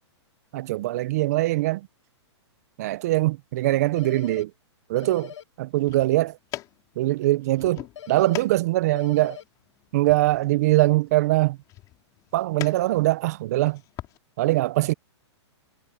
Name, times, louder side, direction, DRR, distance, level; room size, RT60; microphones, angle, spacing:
voice 1, 0.5-1.8 2.8-4.5 4.9-5.3 5.6-6.3 7.0-9.4 9.9-11.6 12.3-13.8 14.4-14.9, right 17 dB, 35° right, 0.4 m, -22 dB
sound 1, 4.0-4.4 5.0-5.4 8.0-8.4 9.0-9.4, left 10 dB, 70° left, 1.2 m, -41 dB
sound 2, 5.6-14.2, left 16 dB, 25° left, 4.5 m, -43 dB
hypercardioid pair, 165°, 15 cm